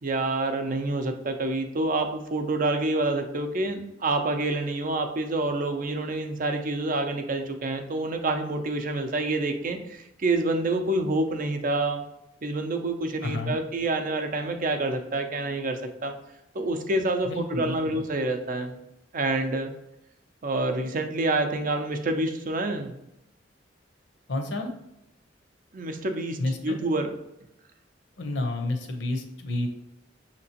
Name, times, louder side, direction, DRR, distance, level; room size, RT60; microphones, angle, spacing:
voice 1, 0.0-12.0 12.4-16.2 16.5-18.8 19.1-19.7 20.4-22.9 25.7-27.1, right 2 dB, 45° right, 5 dB, 0.5 m, -27 dB
voice 2, 13.2-13.6 17.3-18.1 24.3-24.7 26.4-26.8 28.2-29.7, left 2 dB, 70° left, 4 dB, 0.7 m, -30 dB
5.9 x 2.9 x 2.8 m, 0.85 s
head